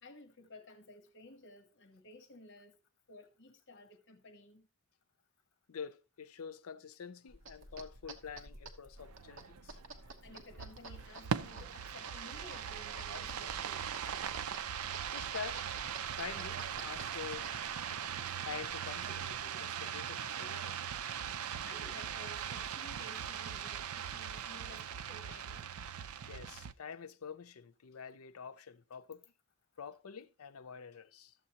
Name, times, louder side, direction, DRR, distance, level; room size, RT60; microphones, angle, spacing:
voice 1, 0.0-2.8 3.1-4.7 10.2-13.9 21.6-25.7, left 1 dB, 55° left, 1.1 m, -55 dB
voice 2, 5.7-9.8 15.1-15.7 16.1-17.5 18.4-20.8 26.3-29.2 29.8-31.3, left 6 dB, 80° left, 0.5 m, -47 dB
sound 1, 7.3-19.4, right 2 dB, 60° right, 1.1 m, -52 dB
sound 2, 9.0-26.7, right 8 dB, 90° right, 0.5 m, -40 dB
13.0 x 7.4 x 2.9 m
head